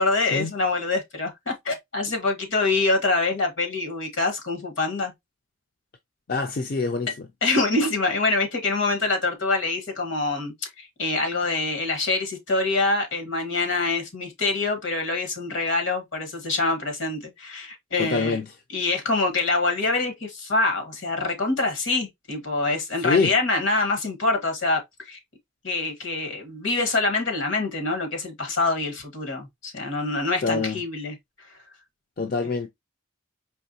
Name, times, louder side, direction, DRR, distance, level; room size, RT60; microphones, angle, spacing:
voice 1, 0.0-5.1 7.1-7.2 7.4-18.4 18.7-25.2 25.6-31.1, left 3 dB, 75° left, 1.4 m, -25 dB
voice 2, 6.3-7.3 18.0-18.5 23.0-23.3 30.4-30.8 32.2-32.7, left 4 dB, 45° left, 0.4 m, -25 dB
4.5 x 3.0 x 2.7 m
head